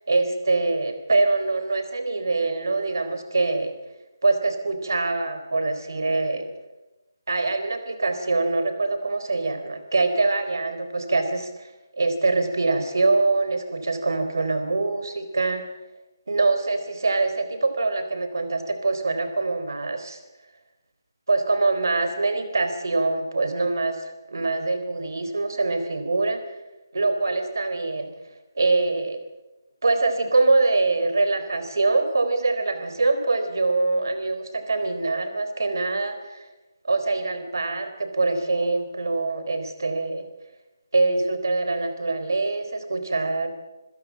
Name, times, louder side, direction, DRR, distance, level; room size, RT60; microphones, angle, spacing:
voice 1, 0.1-3.7 4.2-6.5 7.3-15.6 16.3-20.2 21.3-26.4 26.9-28.1 28.6-29.2 29.8-36.4 36.8-40.2 40.9-43.5, right 3 dB, 60° right, 8 dB, 4.0 m, -24 dB
27.5 x 16.0 x 7.5 m, 1.0 s
hypercardioid pair, 175°, 2 cm